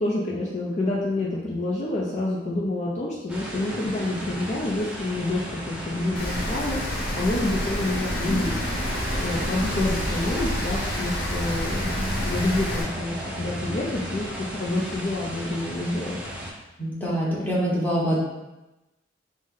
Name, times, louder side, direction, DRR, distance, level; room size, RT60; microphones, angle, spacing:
voice 1, 0.0-8.6 9.2-16.2, left 2 dB, 40° left, -5 dB, 0.5 m, -28 dB
sound 1, 3.3-16.5, right 1 dB, 5° right, 0.6 m, -33 dB
Rain, 6.2-12.8, left 1 dB, 55° left, 1.0 m, -29 dB
voice 2, 16.8-18.2, equal, 10° left, -7 dB, 1.0 m, -25 dB
5.1 x 2.1 x 3.7 m, 1.0 s
head